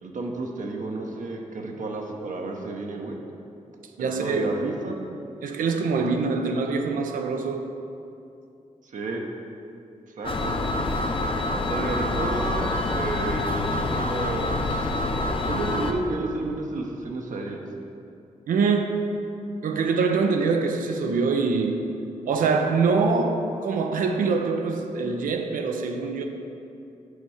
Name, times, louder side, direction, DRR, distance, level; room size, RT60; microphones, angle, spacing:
voice 1, 0.0-3.2 4.0-5.0 8.9-9.2 10.2-10.5 11.7-14.9 15.5-17.6, right 2 dB, 70° right, 0.9 m, -31 dB
voice 2, 4.0-4.5 5.4-7.8 9.6-9.7 18.5-19.3 19.6-22.0 22.3-26.2, right 4 dB, 85° right, 0.6 m, -24 dB
sound 1, 10.2-15.9, left 2 dB, 40° left, 0.7 m, -26 dB
6.6 x 5.4 x 4.9 m
cardioid pair, 55°, 14 cm